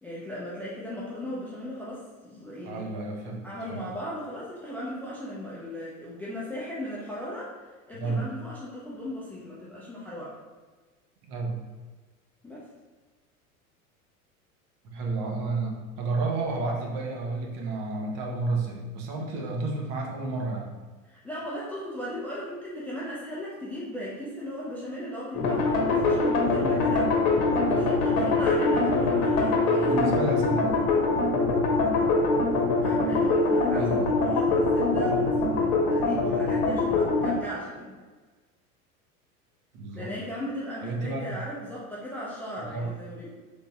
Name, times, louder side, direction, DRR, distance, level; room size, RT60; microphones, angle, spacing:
voice 1, 0.0-2.8 3.4-7.5 7.9-10.4 12.4-12.6 21.0-30.0 32.8-37.9 39.9-43.3, equal, 5° left, -7 dB, 0.3 m, -37 dB
voice 2, 2.6-3.9 7.9-8.3 11.2-11.6 14.8-20.7 29.6-30.8 33.7-34.2 39.7-40.1 40.8-41.4 42.6-42.9, right 3 dB, 45° right, 0 dB, 0.9 m, -31 dB
sound 1, 25.3-37.3, left 3 dB, 50° left, 0.9 m, -23 dB
3.8 x 3.4 x 2.3 m, 1.3 s
hypercardioid pair, 85°, 43 cm